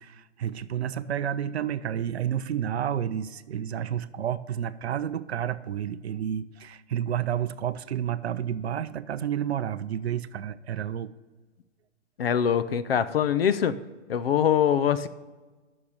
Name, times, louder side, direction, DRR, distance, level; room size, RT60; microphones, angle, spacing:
voice 1, 0.0-11.1, right 9 dB, 60° right, 14 dB, 0.5 m, -30 dB
voice 2, 12.2-13.8 14.1-15.1, left 8 dB, 50° left, 14 dB, 0.6 m, -23 dB
8.6 x 6.6 x 6.5 m, 1.3 s
hypercardioid pair, 170°, 37 cm